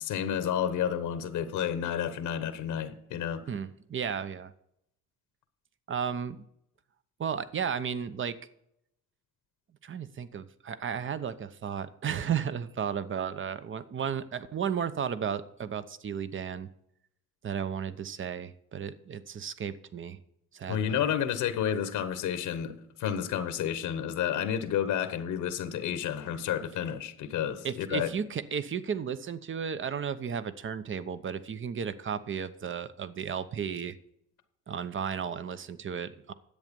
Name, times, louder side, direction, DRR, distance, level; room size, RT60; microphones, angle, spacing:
voice 1, 0.0-3.4 20.7-28.1, left 9 dB, 85° left, 1.2 m, -31 dB
voice 2, 3.5-4.5 5.9-6.4 7.2-8.4 9.8-16.7 17.4-20.2 20.5-21.0 27.6-34.0 34.7-36.3, right 7 dB, 40° right, 0.8 m, -34 dB
10.5 x 7.9 x 5.3 m
cardioid pair, 90°, 30 cm